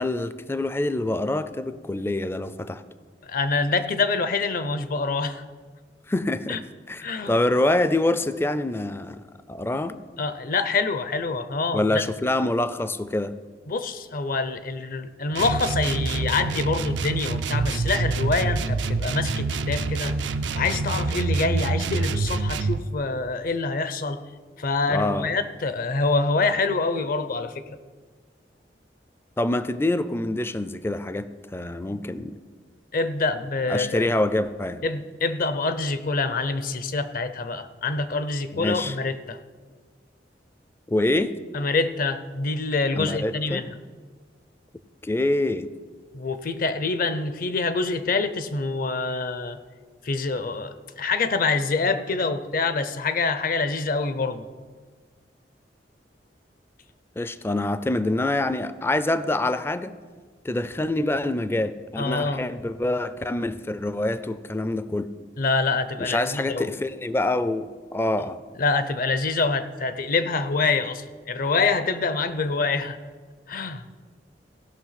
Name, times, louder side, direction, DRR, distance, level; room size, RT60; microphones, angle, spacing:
voice 1, 0.0-2.8 6.1-6.6 6.9-10.0 11.7-13.4 24.9-25.3 29.4-32.4 33.7-34.8 38.5-39.0 40.9-41.4 43.0-43.6 45.0-45.7 57.2-59.9 60.4-65.1 66.0-68.4, left 2 dB, 15° left, 14 dB, 0.4 m, -26 dB
voice 2, 3.3-5.4 6.5-6.6 7.0-7.4 10.2-12.0 13.7-24.2 24.6-27.8 32.9-34.0 34.8-39.4 41.5-43.7 46.1-49.6 50.0-54.5 62.0-62.4 65.4-66.7 68.6-73.0 73.5-73.8, left 3 dB, 55° left, 12 dB, 0.7 m, -26 dB
sound 1, 15.3-22.8, right 3 dB, 85° right, 0.5 m, -26 dB
16.5 x 5.9 x 5.8 m, 1.5 s
head